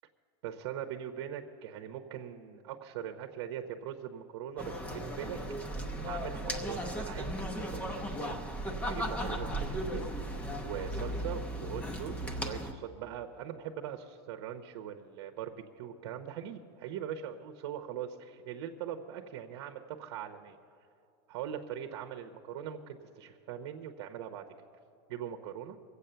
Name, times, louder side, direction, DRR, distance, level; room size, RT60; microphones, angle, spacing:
voice 1, 0.4-5.6 6.0-8.4 8.8-10.0 10.6-20.6 21.3-24.4 25.1-25.8, right 9 dB, 65° right, 5 dB, 0.9 m, -41 dB
sound 1, 4.6-12.7, equal, 10° left, 0.8 m, -36 dB
22.5 x 8.3 x 6.8 m, 2.7 s
supercardioid pair, 170°, 14 cm